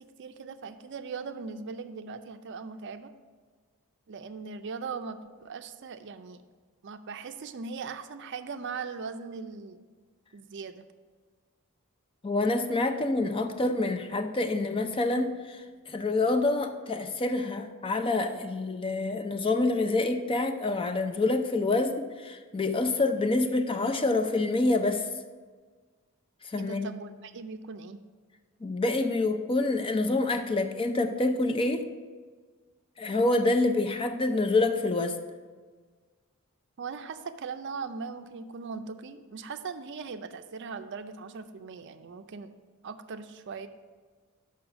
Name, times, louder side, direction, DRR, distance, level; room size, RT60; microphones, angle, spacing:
voice 1, 0.2-3.1 4.1-6.4 6.8-9.8 10.3-10.8 26.6-28.0 36.8-42.5 42.8-43.7, right 5 dB, 55° right, 9 dB, 0.4 m, -39 dB
voice 2, 12.2-25.1 26.4-26.9 28.6-31.9 33.0-35.2, left 2 dB, 25° left, 8 dB, 0.4 m, -27 dB
6.2 x 5.7 x 6.1 m, 1.5 s
head